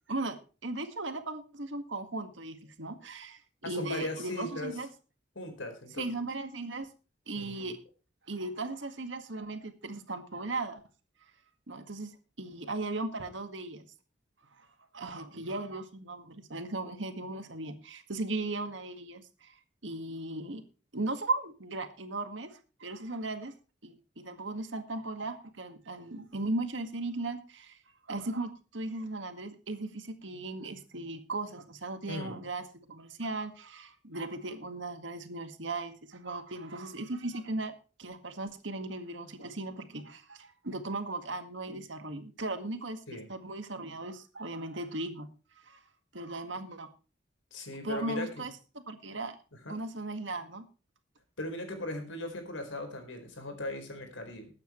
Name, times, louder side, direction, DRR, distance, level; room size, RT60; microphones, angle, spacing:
voice 1, 0.1-3.4 3.7-4.9 6.0-6.9 7.3-7.8 8.3-10.8 11.7-12.1 12.4-13.9 14.6-14.7 14.9-19.5 19.8-20.6 20.9-23.5 23.8-24.0 24.2-27.8 28.1-32.6 32.9-37.7 38.0-45.3 45.6-45.8 46.1-46.9 47.8-49.4 49.7-50.6, right 2 dB, 75° right, 8 dB, 1.9 m, -37 dB
voice 2, 3.6-4.7 5.3-6.1 7.3-7.7 32.1-32.4 43.1-43.3 47.5-48.5 49.6-49.8 51.4-54.5, left 1 dB, 90° left, 5 dB, 4.5 m, -38 dB
21.0 x 8.8 x 3.2 m, 0.34 s
head